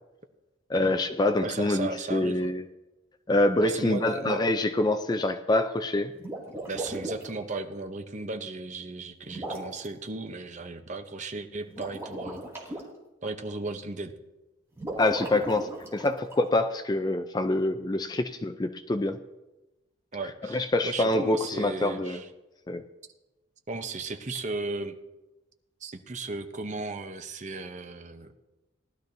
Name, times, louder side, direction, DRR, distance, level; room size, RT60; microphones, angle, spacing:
voice 1, 0.7-2.6 3.3-6.1 15.0-19.2 20.5-22.2 22.7-22.8, left 2 dB, 20° left, 9 dB, 0.3 m, -26 dB
voice 2, 1.4-2.5 3.6-4.5 6.7-12.8 13.2-14.1 20.1-22.3 23.7-25.0 25.8-28.3, right 3 dB, 35° right, 7 dB, 0.8 m, -36 dB
sound 1, 6.1-7.3 9.3-9.8 11.7-12.8 14.7-16.4, right 1 dB, 15° right, 2.3 m, -37 dB
18.5 x 12.0 x 2.7 m, 1.1 s
head